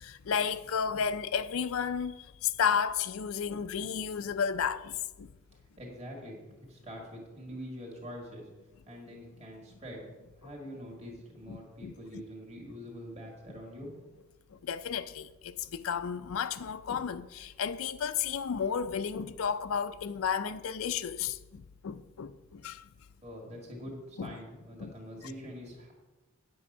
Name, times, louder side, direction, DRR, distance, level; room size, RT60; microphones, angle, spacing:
voice 1, 0.0-5.3 11.5-12.2 14.6-22.8 24.2-24.3 24.8-24.9, left 7 dB, 80° left, 0.4 m, -33 dB
voice 2, 5.8-8.5 8.9-10.1 10.4-13.9 23.2-25.9, equal, 30° right, 2.0 m, -44 dB
9.5 x 7.6 x 5.5 m
head